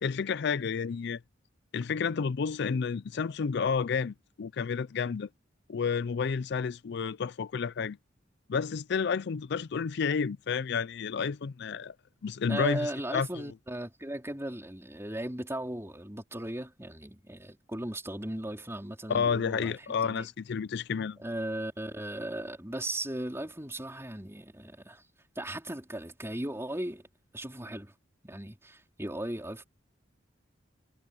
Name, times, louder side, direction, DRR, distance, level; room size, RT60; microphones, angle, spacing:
voice 1, 0.0-1.2 1.7-5.3 5.7-8.0 8.5-11.9 12.2-13.4 19.1-21.2, left 6 dB, 60° left, 0.4 m, -30 dB
voice 2, 12.5-19.8 20.0-20.3 21.2-25.0 25.4-27.0 27.3-27.9 28.2-29.6, right 1 dB, 15° right, 4.3 m, -37 dB
head